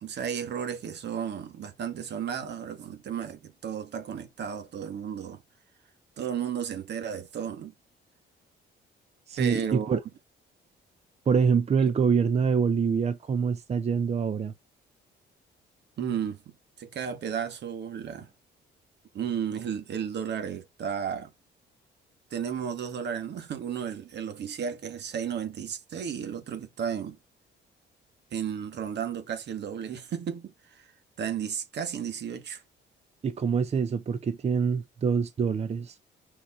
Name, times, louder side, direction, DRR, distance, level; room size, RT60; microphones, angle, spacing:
voice 1, 0.0-5.4 6.2-7.7 9.4-10.0 16.0-18.3 19.1-21.3 22.3-27.2 28.3-30.9 31.2-32.6, right 8 dB, 60° right, 2.0 m, -33 dB
voice 2, 9.3-10.0 11.3-14.5 33.2-36.0, right 6 dB, 35° right, 0.8 m, -25 dB
7.1 x 5.0 x 4.5 m
cardioid pair, 120°, 19 cm